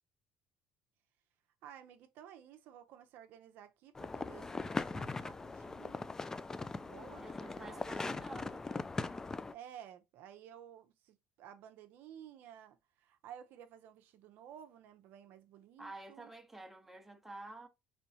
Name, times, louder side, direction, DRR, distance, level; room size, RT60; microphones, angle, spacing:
voice 1, 1.6-6.2 6.7-7.8 9.5-16.3, right 10 dB, 70° right, 0.6 m, -54 dB
sound 1, 3.9-9.5, left 3 dB, 15° left, 0.3 m, -40 dB
voice 2, 7.2-8.7 15.8-17.7, right 2 dB, 5° right, 0.9 m, -50 dB
4.3 x 3.0 x 2.8 m
supercardioid pair, 105°, 3 cm